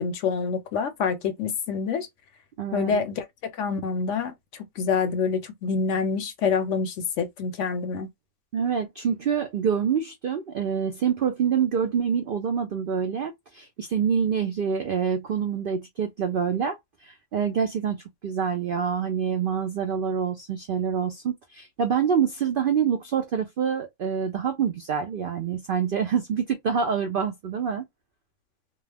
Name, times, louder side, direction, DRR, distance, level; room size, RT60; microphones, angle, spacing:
voice 1, 0.0-2.1 2.7-3.2 3.6-4.3 4.8-8.1, left 5 dB, 70° left, 0.8 m, -26 dB
voice 2, 2.6-3.0 8.5-27.8, right 7 dB, 85° right, 0.4 m, -26 dB
2.4 x 2.3 x 3.2 m
omnidirectional pair, 1.5 m